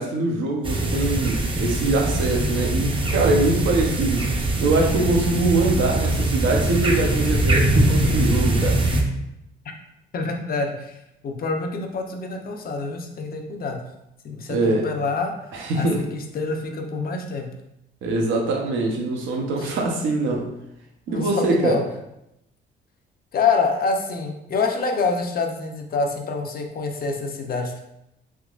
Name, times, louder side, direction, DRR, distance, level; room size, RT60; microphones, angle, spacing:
voice 1, 0.0-4.3 4.6-8.8 14.5-14.9 15.5-16.1 18.0-20.5 21.1-21.8, right 2 dB, 80° right, 1 dB, 0.7 m, -23 dB
sound 1, 0.6-9.0, right 2 dB, 25° right, 0.5 m, -22 dB
voice 2, 10.1-13.8 14.2-15.3 15.7-17.5 19.6-19.7 21.1-21.8 23.3-27.8, left 4 dB, 50° left, 3 dB, 0.6 m, -26 dB
3.5 x 2.9 x 2.4 m, 0.84 s
cardioid pair, 90°, 20 cm